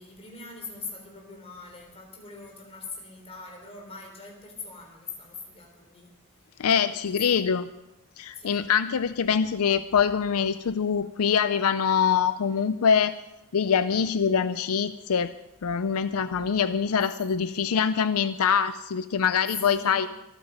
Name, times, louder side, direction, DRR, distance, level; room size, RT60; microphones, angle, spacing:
voice 1, 0.0-6.1 6.9-7.5 8.3-8.7 17.4-17.8 19.5-20.0, left 4 dB, 25° left, 1 dB, 3.8 m, -42 dB
voice 2, 6.6-7.7 8.2-13.2 13.5-15.3 15.6-20.1, left 7 dB, 80° left, 13 dB, 0.5 m, -24 dB
24.5 x 9.1 x 5.3 m, 0.91 s
head